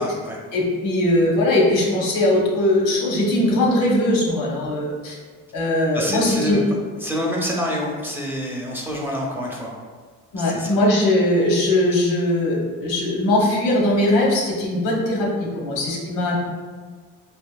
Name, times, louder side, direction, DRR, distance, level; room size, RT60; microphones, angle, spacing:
voice 1, 0.0-0.4 5.9-6.6 7.0-9.7 10.4-10.8, equal, 5° right, -2 dB, 0.5 m, -27 dB
voice 2, 0.5-5.1 5.5-6.6 10.3-16.4, left 1 dB, 90° left, -2 dB, 0.9 m, -20 dB
3.5 x 2.6 x 2.2 m, 1.5 s
cardioid pair, 85°, 33 cm